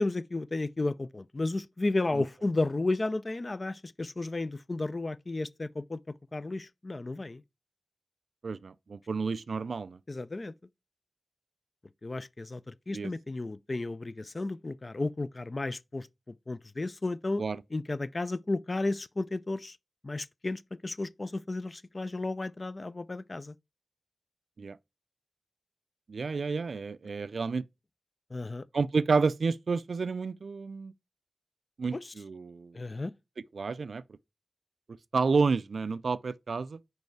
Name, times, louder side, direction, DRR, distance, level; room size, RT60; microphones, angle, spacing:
voice 1, 0.0-6.0 6.3-7.4 10.1-10.5 12.0-17.4 17.7-19.8 20.0-23.5 28.3-28.6 31.9-32.1 32.7-33.1, left 2 dB, 40° left, 0.4 m, -33 dB
voice 2, 8.4-10.0 12.9-13.1 17.4-17.6 24.6-24.8 26.1-27.6 28.7-30.9 31.8-32.8 33.5-34.0 35.1-36.8, right 4 dB, 75° right, 0.3 m, -30 dB
5.3 x 4.7 x 4.6 m
wide cardioid pair, 80°, 0 cm